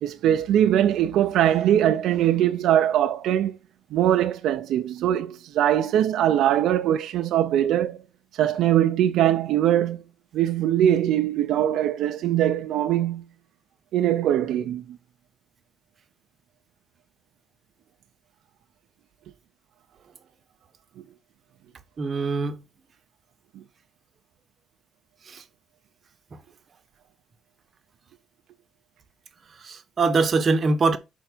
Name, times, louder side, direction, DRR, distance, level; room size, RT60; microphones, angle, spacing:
voice 1, 0.0-3.5 3.9-8.0 8.4-10.0 10.3-13.2 13.9-14.8, right 11 dB, 85° right, 0.6 m, -21 dB
voice 2, 22.0-22.6 29.7-31.0, right 4 dB, 45° right, 1.0 m, -22 dB
5.9 x 4.6 x 4.4 m
cardioid pair, 90°, 0 cm